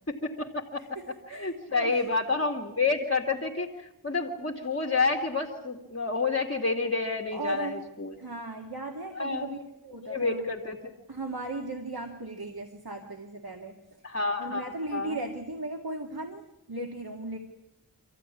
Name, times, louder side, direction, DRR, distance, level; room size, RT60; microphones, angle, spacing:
voice 1, 0.1-0.8 1.3-8.1 9.1-9.5 10.0-10.8 14.0-15.2, left 3 dB, 35° left, 2 dB, 2.4 m, -29 dB
voice 2, 0.8-2.0 7.3-7.8 8.2-10.4 11.1-13.8 14.4-17.4, right 2 dB, 75° right, 2 dB, 2.4 m, -37 dB
26.5 x 15.0 x 9.9 m, 0.90 s
wide cardioid pair, 40°, 37 cm